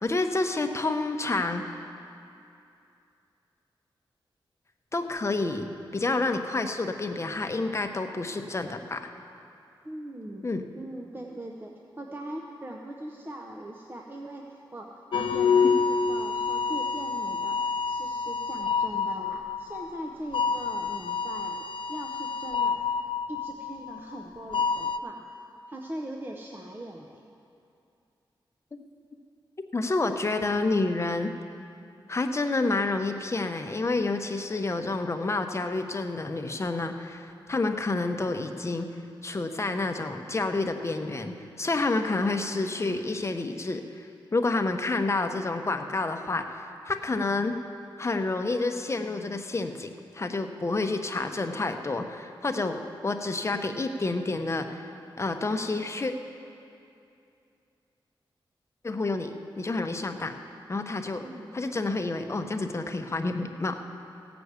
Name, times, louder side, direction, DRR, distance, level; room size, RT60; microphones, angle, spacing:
voice 1, 0.0-1.6 4.9-5.7 5.9-9.1 10.4-10.7 28.7-28.8 29.7-31.3 32.1-38.9 39.2-44.1 44.3-47.6 48.0-54.8 55.2-56.1 58.8-60.4 60.7-61.2 61.5-63.8, left 3 dB, 30° left, 6 dB, 0.8 m, -29 dB
voice 2, 9.8-10.5 10.7-22.8 23.3-25.3 25.7-27.2 61.2-61.6, right 1 dB, 25° right, 1 dB, 0.8 m, -40 dB
sound 1, 15.1-24.2 24.5-25.0, left 5 dB, 70° left, 0.6 m, -28 dB
16.0 x 6.1 x 8.1 m, 2.6 s
wide cardioid pair, 90°, 9 cm